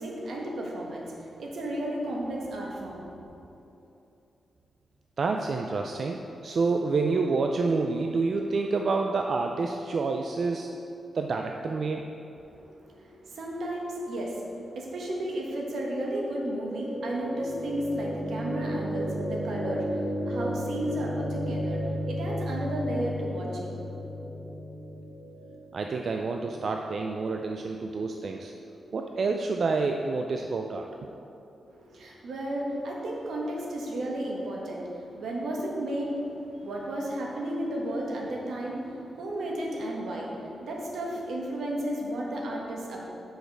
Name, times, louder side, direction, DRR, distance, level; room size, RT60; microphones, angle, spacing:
voice 1, 0.0-3.1 12.6-12.7 13.0-14.4 14.7-24.2 31.7-43.0, right 1 dB, 80° right, -2 dB, 1.4 m, -33 dB
voice 2, 5.2-10.7 11.1-12.1 25.7-28.5 28.9-31.1, right 4 dB, 55° right, 3 dB, 0.4 m, -28 dB
sound 1, 16.0-28.1, equal, 30° right, 1.1 m, -34 dB
6.3 x 5.1 x 6.1 m, 2.9 s
wide cardioid pair, 120°, 0 cm